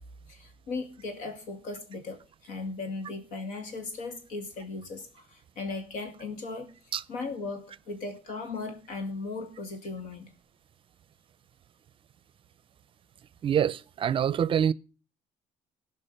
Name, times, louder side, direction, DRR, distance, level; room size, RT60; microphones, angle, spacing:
voice 1, 0.3-6.7 7.1-10.3, left 3 dB, 80° left, 2.3 m, -37 dB
voice 2, 13.4-14.7, right 9 dB, 45° right, 0.5 m, -25 dB
14.5 x 5.4 x 6.6 m
supercardioid pair, 80°, 12 cm